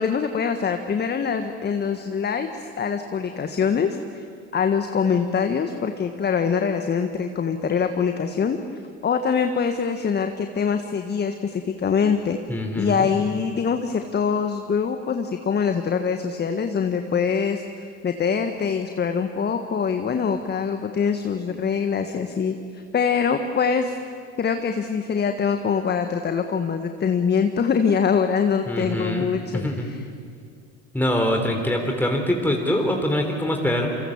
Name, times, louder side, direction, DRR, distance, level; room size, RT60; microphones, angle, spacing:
voice 1, 0.0-4.2 4.5-8.6 9.0-12.4 12.7-17.6 18.0-23.9 24.4-30.0, left 6 dB, 30° left, 7 dB, 1.5 m, -24 dB
voice 2, 12.5-13.2 28.7-29.9 30.9-33.9, equal, 5° left, 2 dB, 3.8 m, -24 dB
28.5 x 25.5 x 7.3 m, 2.2 s
figure-of-eight pair, 70°, 36 cm